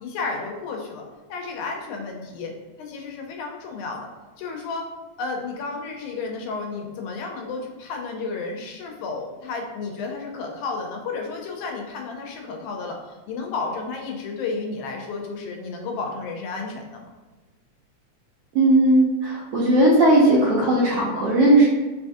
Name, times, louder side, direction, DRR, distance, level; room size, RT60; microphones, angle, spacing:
voice 1, 0.0-2.5 2.8-4.1 4.4-4.9 5.2-17.1, left 4 dB, 85° left, 1 dB, 2.0 m, -32 dB
voice 2, 18.5-21.6, right 1 dB, 70° right, -7 dB, 1.5 m, -17 dB
4.7 x 2.4 x 2.6 m, 1.2 s
omnidirectional pair, 3.4 m